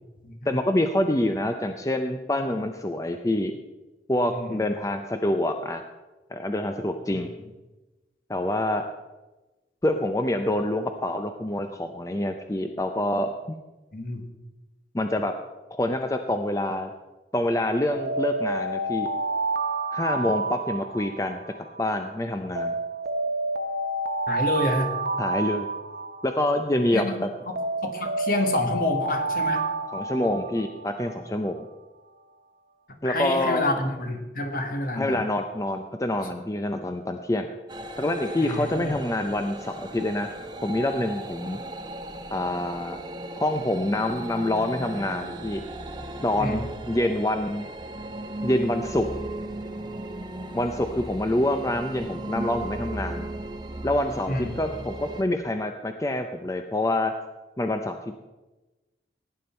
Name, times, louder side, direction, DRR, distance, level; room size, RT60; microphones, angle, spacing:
voice 1, 0.5-3.6 4.1-5.8 6.3-7.3 8.3-8.8 9.8-13.3 14.9-15.3 15.7-16.9 17.3-19.1 19.9-21.4 21.8-22.7 25.2-25.7 26.2-27.3 29.9-31.6 33.0-33.6 34.9-37.5 38.0-40.3 40.6-41.6 42.3-43.0 43.4-45.6 46.2-47.7 48.4-49.1 50.5-53.3 53.8-57.1 57.6-58.0, left 1 dB, 20° left, 6 dB, 0.5 m, -26 dB
voice 2, 4.3-4.6 7.1-7.2 13.9-14.3 24.3-25.0 26.9-29.7 33.0-35.2 38.4-38.9 46.4-46.6 54.3-54.6, left 1 dB, 55° left, 5 dB, 1.7 m, -28 dB
Alarm, 17.9-22.0 22.6-27.0 27.6-31.4, right 2 dB, 60° right, 0.8 m, -29 dB
sound 1, 37.7-55.2, right 1 dB, 25° right, 0.9 m, -36 dB
17.0 x 9.7 x 4.4 m, 1.1 s
head